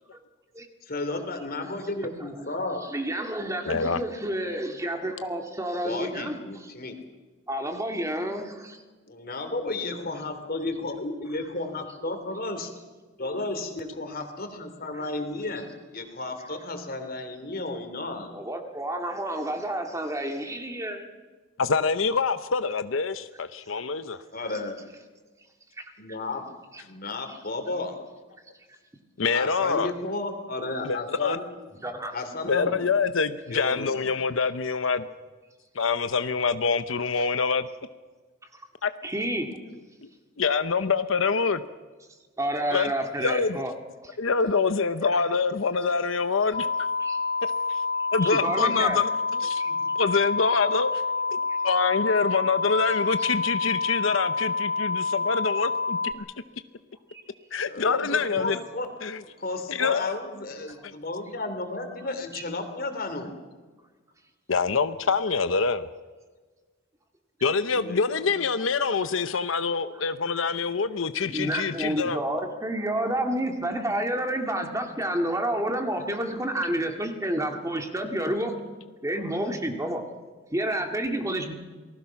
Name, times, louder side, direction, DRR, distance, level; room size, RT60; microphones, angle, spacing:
voice 1, 0.8-2.8 5.8-7.0 9.1-12.7 13.2-18.3 24.3-24.8 26.0-26.4 26.8-28.0 29.3-31.4 32.1-32.9 33.5-34.2 48.8-48.9 49.6-49.9 57.7-58.9 59.2-63.3 67.7-68.4, left 2 dB, 50° left, 3.1 m, -33 dB
voice 2, 2.9-6.4 7.5-8.8 18.3-21.0 25.8-25.9 26.7-26.8 31.8-32.2 38.5-38.6 39.0-39.5 42.4-43.7 44.0-44.2 47.0-47.2 48.2-49.0 51.5-51.6 57.1-57.2 60.8-60.9 62.3-62.4 69.1-69.2 71.2-78.5 79.0-80.0 80.5-81.5, right 1 dB, 15° right, 2.2 m, -29 dB
voice 3, 3.7-4.0 21.6-24.2 29.2-29.9 30.8-31.4 32.5-35.1 35.7-37.7 38.8-38.9 40.0-40.1 40.4-41.6 42.7-42.9 43.2-43.6 44.2-46.7 48.1-49.6 50.0-50.9 51.3-51.4 51.6-56.2 57.5-58.6 59.0-59.2 59.7-60.1 64.5-65.9 67.4-72.2, left 5 dB, 85° left, 0.8 m, -25 dB
sound 1, 46.5-56.1, left 4 dB, 25° left, 1.4 m, -28 dB
28.0 x 19.5 x 5.9 m
head